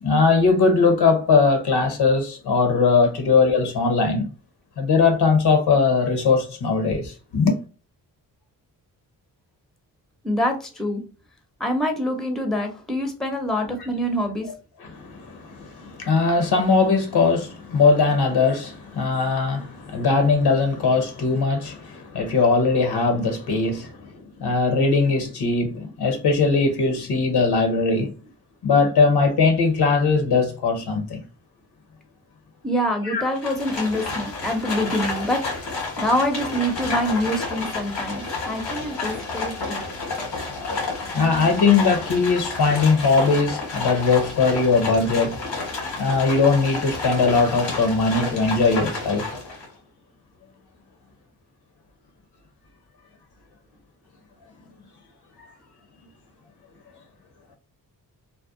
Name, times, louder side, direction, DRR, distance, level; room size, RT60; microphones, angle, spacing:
voice 1, 0.0-4.3 4.8-7.5 13.6-13.7 14.8-28.1 28.6-31.2 33.0-33.2 41.1-45.3 46.0-49.3, left 4 dB, 65° left, 0.8 m, -20 dB
voice 2, 10.2-11.0 11.6-14.5 32.6-35.4 36.0-39.8, equal, ahead, 0.6 m, -25 dB
Livestock farm animals working animals, 33.3-49.7, left 3 dB, 85° left, 1.3 m, -30 dB
2.5 x 2.1 x 2.5 m
supercardioid pair, 50°, 42 cm